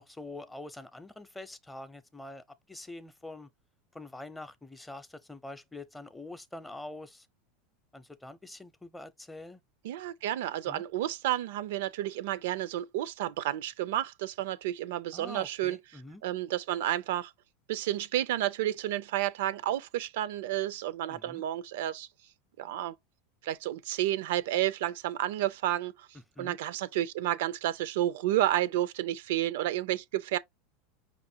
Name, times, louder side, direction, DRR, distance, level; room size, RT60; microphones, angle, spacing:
voice 1, 0.0-3.5 3.9-7.3 7.9-9.6 10.6-10.8 15.1-16.2 21.1-21.4 26.4-26.6, left 2 dB, 10° left, 0.6 m, -45 dB
voice 2, 9.8-15.8 16.2-17.3 17.7-22.1 22.6-22.9 23.4-26.1 26.4-30.4, right 13 dB, 70° right, 0.3 m, -31 dB
5.2 x 2.5 x 2.8 m
hypercardioid pair, 90°, 0 cm